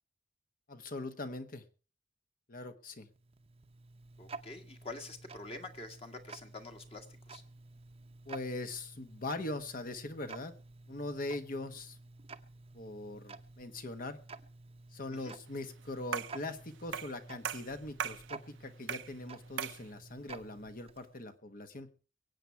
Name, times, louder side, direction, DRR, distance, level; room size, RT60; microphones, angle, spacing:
voice 1, 0.7-1.6 2.5-3.1 8.2-10.5 10.9-12.0 12.7-14.2 14.9-21.9, left 2 dB, 50° left, 9 dB, 1.3 m, -41 dB
Tick-tock, 3.0-21.3, right 3 dB, 30° right, 0.8 m, -52 dB
voice 2, 4.2-7.4 15.1-15.4, left 2 dB, 35° left, 5 dB, 1.8 m, -47 dB
sound 1, 16.1-16.4 16.9-17.2 17.4-18.3 18.9-19.1 19.6-19.8, right 7 dB, 75° right, 0.7 m, -37 dB
23.0 x 8.5 x 4.6 m, 0.36 s
head